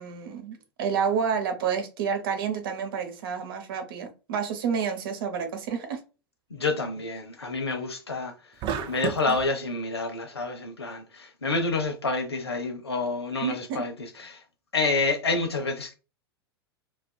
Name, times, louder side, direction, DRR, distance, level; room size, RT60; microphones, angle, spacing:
voice 1, 0.0-6.0 13.4-13.8, right 7 dB, 60° right, 0.8 m, -29 dB
voice 2, 6.5-8.3 8.9-14.4 14.7-15.9, left 3 dB, 85° left, 0.7 m, -28 dB
sound 1, 8.6-9.5, right 7 dB, 35° right, 0.5 m, -31 dB
3.3 x 2.4 x 2.2 m
figure-of-eight pair, 90°, 13 cm